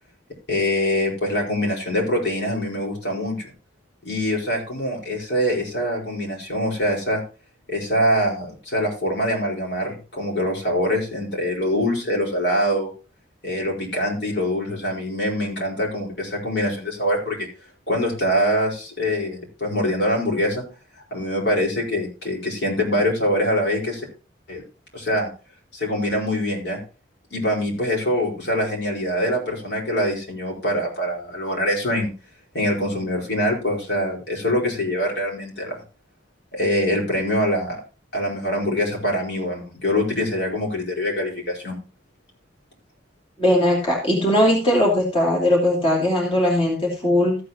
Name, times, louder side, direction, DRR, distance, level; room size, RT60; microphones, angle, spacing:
voice 1, 0.5-3.5 4.0-7.2 7.7-12.9 13.4-17.5 17.9-20.6 21.1-24.1 24.5-24.6 24.9-25.3 25.7-26.8 27.3-32.1 32.5-35.8 36.5-37.8 38.1-41.8, equal, 65° left, -1 dB, 4.8 m, -24 dB
voice 2, 43.4-47.4, left 1 dB, 30° left, -2 dB, 2.9 m, -19 dB
14.5 x 8.5 x 3.0 m, 0.35 s
head